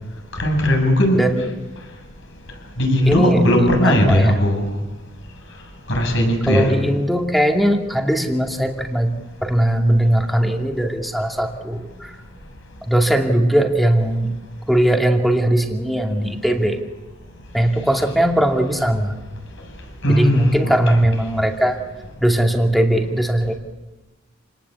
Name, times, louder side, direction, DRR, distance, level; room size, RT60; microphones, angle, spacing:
voice 1, 0.3-1.2 2.8-4.7 5.9-6.7 20.0-20.7 21.2-21.3, equal, 65° left, 2 dB, 7.9 m, -17 dB
voice 2, 1.2-1.5 3.0-3.4 3.8-4.3 6.5-9.1 9.4-12.1 12.9-14.3 14.7-16.8 17.5-19.2 20.1-21.8 22.2-23.5, right 1 dB, ahead, 3 dB, 2.5 m, -19 dB
29.0 x 19.5 x 8.5 m, 1.1 s
head